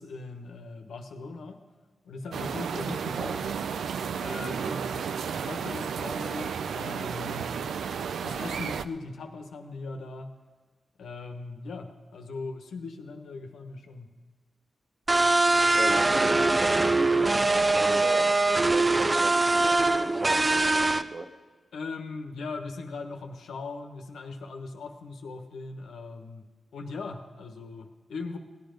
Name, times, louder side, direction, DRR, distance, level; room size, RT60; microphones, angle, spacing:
voice 1, 0.0-1.6 2.0-3.5 4.2-7.6 8.2-10.3 11.0-14.1 21.7-26.4 26.7-28.4, left 3 dB, 85° left, 5 dB, 1.1 m, -39 dB
sound 1, 2.3-8.9, right 7 dB, 85° right, 0.4 m, -32 dB
voice 2, 4.5-4.9 15.7-18.3 18.7-21.3, right 2 dB, 45° right, 8 dB, 0.9 m, -37 dB
sound 2, 15.1-21.0, right 2 dB, 30° right, 0.5 m, -22 dB
16.5 x 9.5 x 5.2 m, 1.4 s
cardioid pair, 60°, 0 cm